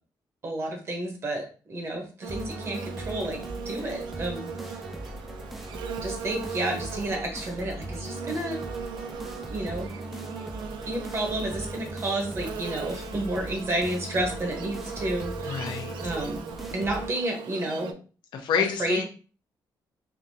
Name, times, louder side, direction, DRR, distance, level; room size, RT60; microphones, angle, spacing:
voice 1, 0.4-3.4 3.6-4.8 6.0-8.6 9.5-9.9 10.8-15.7 16.0-16.4 16.7-17.9 18.8-19.0, right 1 dB, 35° right, 2 dB, 1.0 m, -31 dB
Buzz, 2.2-17.9, right 6 dB, 85° right, 0.4 m, -38 dB
sound 1, 2.3-17.1, right 1 dB, ahead, 0.4 m, -40 dB
voice 2, 15.5-15.9 18.3-19.0, left 6 dB, 75° left, 4 dB, 0.6 m, -28 dB
3.4 x 2.7 x 2.7 m, 0.37 s
cardioid pair, 140°, 8 cm